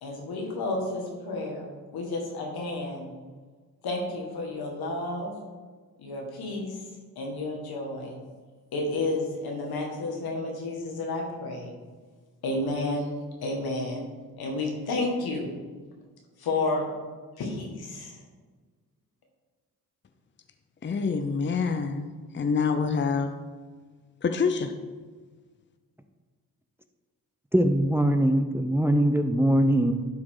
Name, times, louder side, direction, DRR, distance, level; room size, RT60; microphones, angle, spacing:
voice 1, 0.0-3.1 3.8-5.3 6.0-6.8 7.2-8.2 8.7-11.7 12.4-13.1 13.4-14.0 14.4-15.5 16.4-16.9 17.4-18.1, left 2 dB, 85° left, 1.9 m, -31 dB
voice 2, 20.8-22.1 22.3-23.3 24.2-24.7, left 5 dB, 30° left, 0.7 m, -26 dB
voice 3, 27.5-29.9, right 1 dB, 5° right, 0.7 m, -22 dB
11.5 x 4.8 x 3.8 m
cardioid pair, 65°, 36 cm